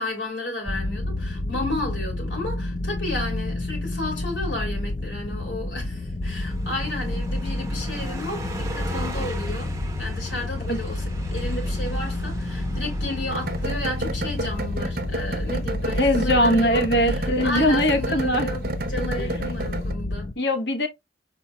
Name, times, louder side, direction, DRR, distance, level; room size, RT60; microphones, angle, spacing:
voice 1, 0.0-9.7 10.0-20.3, left 1 dB, 80° left, 2.9 m, -32 dB
sound 1, 0.7-20.3, left 2 dB, 25° left, 0.4 m, -30 dB
Car passing by, 6.2-14.7, right 2 dB, 15° right, 0.7 m, -38 dB
sound 2, 13.3-19.9, right 2 dB, 55° right, 0.8 m, -30 dB
voice 2, 16.0-18.5 19.2-19.4 20.4-20.9, equal, 65° left, 1.0 m, -21 dB
5.5 x 4.1 x 2.3 m
head